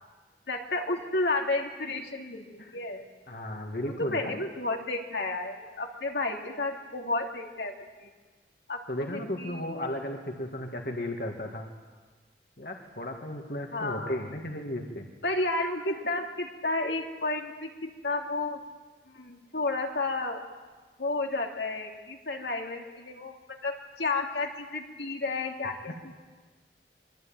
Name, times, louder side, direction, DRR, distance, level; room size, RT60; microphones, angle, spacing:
voice 1, 0.5-3.0 4.1-8.1 8.7-9.6 13.7-14.2 15.2-18.6 19.1-20.4 21.0-26.2, left 2 dB, 75° left, 2 dB, 2.8 m, -32 dB
voice 2, 3.3-4.4 8.9-11.7 12.6-15.1 25.9-26.0, left 1 dB, 55° left, 2 dB, 2.4 m, -35 dB
25.0 x 23.5 x 9.1 m, 1.4 s
head